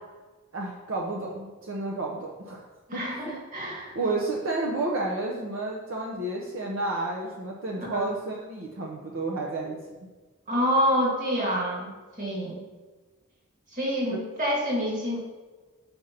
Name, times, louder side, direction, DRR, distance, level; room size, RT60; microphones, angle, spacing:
voice 1, 0.5-2.6 2.9-3.4 3.9-9.8 14.1-14.2, right 2 dB, 70° right, -2 dB, 0.9 m, -31 dB
voice 2, 2.9-3.9 7.8-8.1 10.5-11.9 12.2-12.6 13.7-15.2, equal, 40° right, -2 dB, 1.8 m, -27 dB
5.1 x 4.4 x 5.7 m, 1.3 s
head